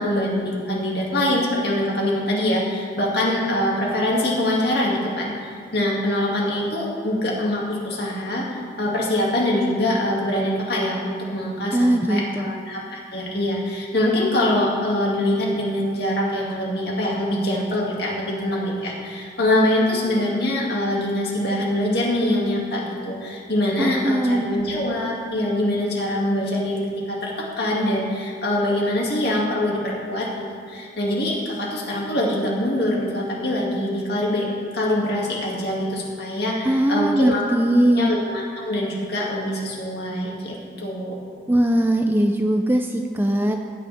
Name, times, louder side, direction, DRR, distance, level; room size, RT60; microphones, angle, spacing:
voice 1, 0.0-8.4 8.8-26.8 27.1-27.3 27.6-34.5 34.7-37.4 38.0-41.1, left 1 dB, 55° left, -4 dB, 2.5 m, -24 dB
voice 2, 11.7-12.5 23.8-24.6 36.6-38.1 41.5-43.5, right 1 dB, 10° right, 4 dB, 0.4 m, -20 dB
15.5 x 9.5 x 3.6 m, 2.4 s
head